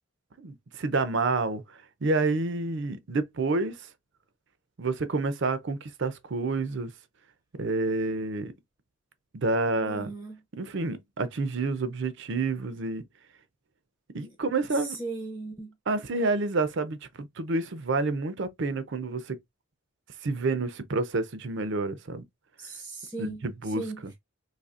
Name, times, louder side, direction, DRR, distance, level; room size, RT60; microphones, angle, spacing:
voice 1, 0.4-3.9 4.8-6.9 7.6-8.5 9.3-10.1 10.5-13.0 14.1-15.0 15.9-19.4 20.2-22.2 23.2-24.1, right 3 dB, 55° right, 0.5 m, -29 dB
voice 2, 9.8-10.4 14.7-15.7 22.6-24.0, right 3 dB, 10° right, 0.6 m, -38 dB
4.1 x 2.8 x 2.4 m
head